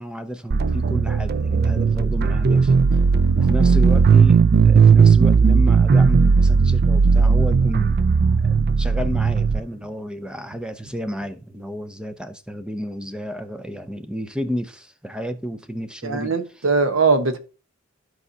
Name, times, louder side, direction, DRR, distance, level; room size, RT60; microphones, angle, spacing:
voice 1, 0.0-2.7 3.3-8.0 8.4-16.3, equal, 5° right, 0.6 m, -31 dB
sound 1, 0.5-9.6, right 5 dB, 50° right, 0.4 m, -16 dB
voice 2, 16.0-17.4, right 4 dB, 70° right, 1.1 m, -20 dB
14.0 x 4.6 x 2.8 m
head